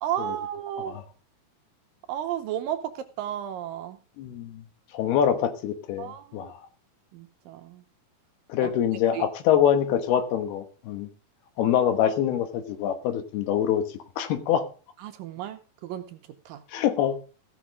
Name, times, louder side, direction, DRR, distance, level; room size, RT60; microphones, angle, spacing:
voice 1, 0.0-1.0 2.1-4.0 6.0-6.5 7.1-7.8 8.6-8.7 9.1-9.3 15.0-16.2 16.5-16.6, right 11 dB, 75° right, 2.2 m, -33 dB
voice 2, 4.2-4.6 4.9-6.6 8.5-11.1 11.6-13.8 14.2-14.7 16.7-17.2, left 9 dB, 85° left, 3.2 m, -25 dB
15.5 x 6.2 x 5.0 m
omnidirectional pair, 4.4 m